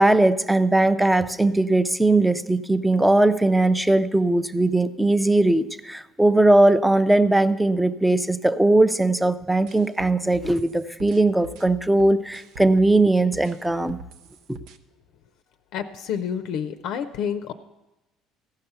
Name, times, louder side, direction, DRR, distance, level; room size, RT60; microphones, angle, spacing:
voice 1, 0.0-14.0, right 2 dB, 5° right, 13 dB, 0.4 m, -19 dB
sound 1, 9.7-13.0 13.3-14.8, right 2 dB, 75° right, 0.6 m, -43 dB
voice 2, 15.7-17.5, left 8 dB, 70° left, 9 dB, 0.5 m, -29 dB
15.0 x 5.7 x 6.7 m, 1.0 s
cardioid pair, 115°, 0 cm